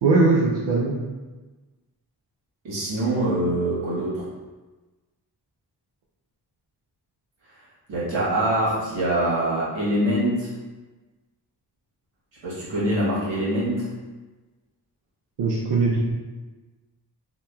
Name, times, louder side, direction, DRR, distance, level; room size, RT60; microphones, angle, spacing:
voice 1, 0.0-1.0 15.4-16.0, right 3 dB, 65° right, -4 dB, 0.5 m, -20 dB
voice 2, 2.6-4.2 7.9-10.5 12.4-13.9, right 1 dB, 80° right, -8 dB, 1.1 m, -24 dB
2.8 x 2.2 x 2.2 m, 1.2 s
cardioid pair, 55°, 44 cm